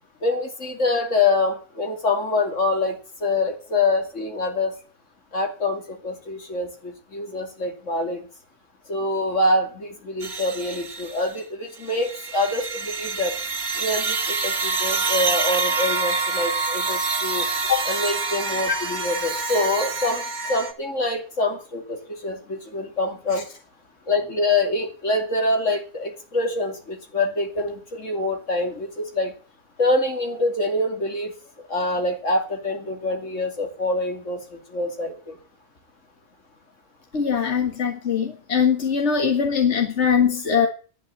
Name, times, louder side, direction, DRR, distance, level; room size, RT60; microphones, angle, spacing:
voice 1, 0.2-4.7 5.3-8.3 8.9-13.3 13.8-17.5 17.8-20.2 20.5-23.5 24.1-29.3 29.8-31.3 31.7-35.4, left 2 dB, 85° left, 3 dB, 3.2 m, -25 dB
sound 1, 10.2-11.4 11.8-20.7, right 4 dB, 60° right, 2.1 m, -26 dB
voice 2, 37.1-40.7, left 7 dB, 65° left, 3 dB, 2.0 m, -21 dB
11.0 x 9.4 x 8.7 m, 0.38 s
omnidirectional pair, 1.3 m